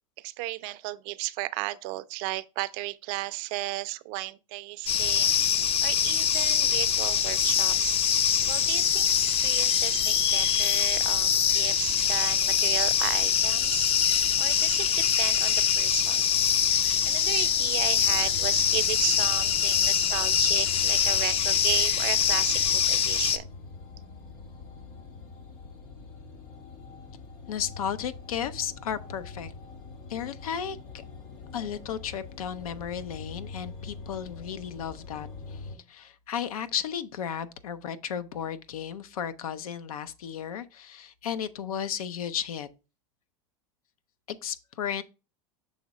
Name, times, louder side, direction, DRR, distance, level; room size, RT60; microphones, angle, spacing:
voice 1, 0.2-5.3 5.8-8.0 8.5-13.9 14.4-16.3 16.7-23.5, right 19 dB, 55° right, 0.5 m, -34 dB
sound 1, 4.9-23.4, left 8 dB, 35° left, 0.5 m, -24 dB
sound 2, 18.0-35.8, left 4 dB, 65° left, 3.1 m, -43 dB
voice 2, 27.5-29.5 30.1-30.8 31.5-42.7 44.3-45.0, left 8 dB, 90° left, 0.6 m, -34 dB
6.4 x 3.1 x 4.7 m
hypercardioid pair, 105°, 18 cm